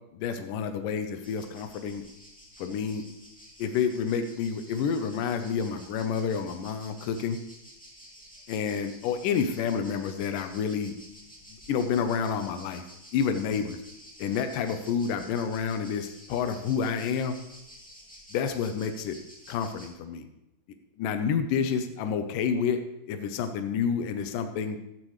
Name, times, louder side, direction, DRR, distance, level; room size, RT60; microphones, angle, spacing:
voice 1, 0.1-2.0 2.6-3.0 3.6-7.4 8.5-10.9 11.7-12.8 13.1-13.8 14.2-17.4 18.3-19.2 19.5-20.3 21.0-22.8 23.1-24.8, left 6 dB, 80° left, 7 dB, 2.5 m, -29 dB
sound 1, 1.2-19.9, equal, 5° left, 1.7 m, -51 dB
15.0 x 13.0 x 3.2 m, 0.84 s
omnidirectional pair, 3.9 m